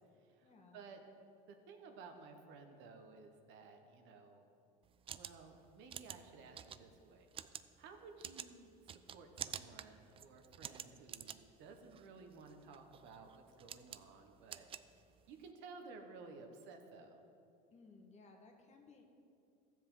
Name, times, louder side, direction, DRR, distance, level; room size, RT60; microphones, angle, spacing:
voice 1, 0.4-0.8 17.7-19.0, left 3 dB, 35° left, 2 dB, 1.4 m, -60 dB
voice 2, 1.5-4.5 5.1-7.3 7.8-14.7 15.3-17.2, right 4 dB, 65° right, 4 dB, 1.2 m, -56 dB
sound 1, 4.8-15.5, right 9 dB, 25° right, 0.3 m, -50 dB
13.5 x 7.4 x 3.9 m, 2.6 s
supercardioid pair, 110°, 21 cm